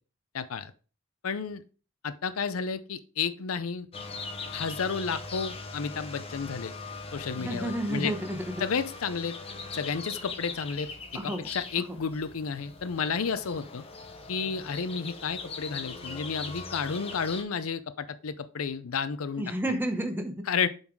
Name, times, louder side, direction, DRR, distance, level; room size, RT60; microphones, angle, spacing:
voice 1, 0.3-0.7 1.2-1.6 2.0-3.9 4.5-6.7 7.1-8.1 8.6-9.4 9.7-10.9 11.2-13.8 14.3-19.4 20.5-20.7, left 5 dB, 80° left, 13 dB, 0.6 m, -31 dB
sound 1, 3.9-17.4, left 4 dB, 25° left, 0.9 m, -40 dB
voice 2, 7.4-8.5 11.1-11.5 11.8-12.0 19.4-20.4, right 1 dB, 10° right, 5 dB, 1.0 m, -31 dB
7.2 x 4.0 x 4.6 m, 0.37 s
head